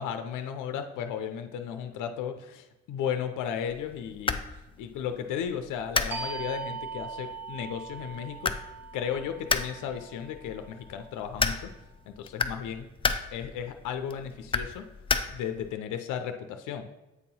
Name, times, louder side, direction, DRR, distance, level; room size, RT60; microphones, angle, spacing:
voice 1, 0.0-4.4 4.8-8.5 8.9-11.7 12.1-12.9 13.3-14.9 15.3-16.9, left 8 dB, 85° left, 7 dB, 0.6 m, -35 dB
sound 1, 3.7-15.7, left 4 dB, 20° left, 0.4 m, -34 dB
sound 2, 6.1-11.4, right 5 dB, 5° right, 1.2 m, -41 dB
8.1 x 2.8 x 5.4 m, 1.0 s
cardioid pair, 90°, 30 cm